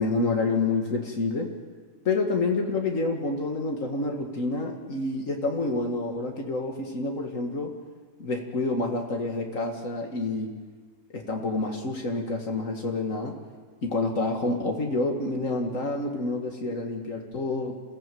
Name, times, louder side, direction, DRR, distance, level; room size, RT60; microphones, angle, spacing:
voice 1, 0.0-1.5 2.1-7.8 8.2-10.5 11.1-13.4 13.8-17.8, left 3 dB, 80° left, 1 dB, 2.4 m, -28 dB
28.0 x 16.5 x 7.8 m, 1.5 s
omnidirectional pair, 1.3 m